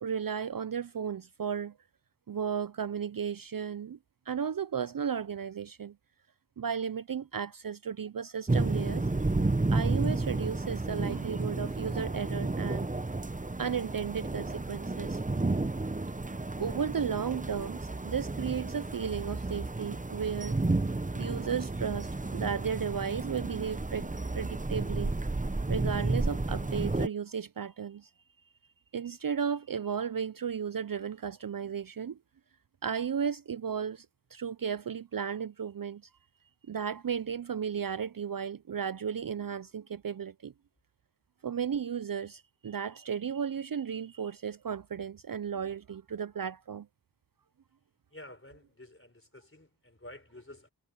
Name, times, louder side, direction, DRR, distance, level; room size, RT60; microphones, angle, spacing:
voice 1, 0.0-1.7 2.3-4.0 4.3-6.0 6.6-9.0 9.7-12.9 13.6-15.2 16.6-20.6 21.2-25.1 25.7-28.1 28.9-32.2 32.8-34.1 34.3-36.0 36.7-40.5 41.4-46.9, right 7 dB, 55° right, 0.5 m, -34 dB
sound 1, 8.5-27.1, right 2 dB, 20° right, 0.8 m, -32 dB
voice 2, 48.1-50.7, left 1 dB, 30° left, 4.2 m, -50 dB
wide cardioid pair, 45°, 41 cm